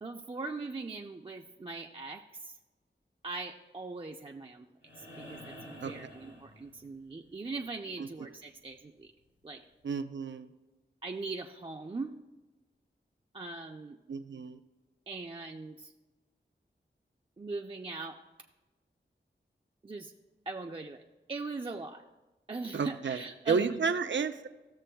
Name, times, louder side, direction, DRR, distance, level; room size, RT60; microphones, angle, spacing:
voice 1, 0.0-2.6 3.2-4.7 5.2-9.1 9.4-9.6 11.0-12.1 13.3-14.0 15.1-15.9 17.4-18.2 19.8-20.1 20.5-21.0 21.3-22.0 22.5-23.9, right 3 dB, 25° right, 1 dB, 0.4 m, -40 dB
sound 1, 4.8-7.1 9.0-9.1, left 1 dB, 80° left, 3.0 m, -49 dB
voice 2, 9.8-10.5 14.1-14.6 22.7-23.2 23.5-24.5, right 5 dB, 75° right, 9 dB, 0.5 m, -31 dB
14.0 x 6.9 x 2.2 m, 1.1 s
wide cardioid pair, 70°, 19 cm